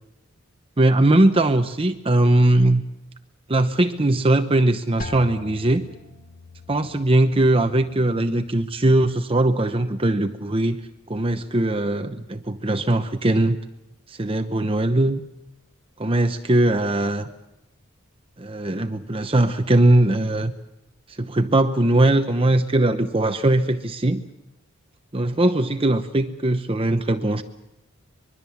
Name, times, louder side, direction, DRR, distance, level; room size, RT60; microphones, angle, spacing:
voice 1, 0.8-2.8 3.5-5.8 6.7-10.8 11.1-13.6 14.1-15.2 16.0-17.3 18.4-20.5 21.1-24.2 25.1-27.4, right 1 dB, 25° right, 8 dB, 0.8 m, -20 dB
sound 1, 5.0-10.6 10.9-11.6 12.2-12.6, left 3 dB, 40° left, 1.9 m, -44 dB
25.0 x 22.0 x 7.2 m, 0.87 s
head